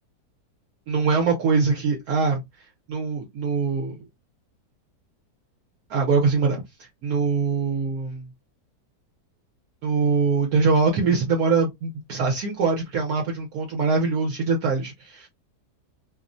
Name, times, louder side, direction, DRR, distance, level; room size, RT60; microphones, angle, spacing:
voice 1, 0.9-2.4 2.9-4.0 5.9-8.3 9.8-15.3, right 4 dB, 70° right, 1.1 m, -23 dB
2.8 x 2.0 x 2.4 m
omnidirectional pair, 1.7 m